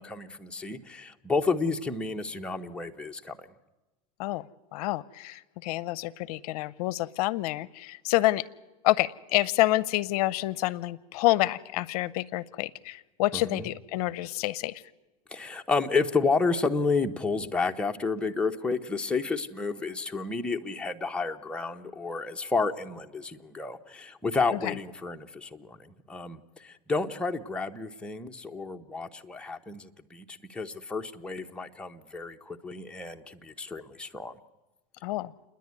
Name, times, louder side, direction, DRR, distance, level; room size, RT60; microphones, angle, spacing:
voice 1, 0.0-3.5 13.3-13.7 15.3-34.4, left 4 dB, 5° left, 3 dB, 0.8 m, -31 dB
voice 2, 4.7-8.4 8.8-14.8 24.6-24.7 35.0-35.3, left 17 dB, 65° left, 22 dB, 0.6 m, -28 dB
29.0 x 10.5 x 9.5 m, 1.1 s
supercardioid pair, 125°, 21 cm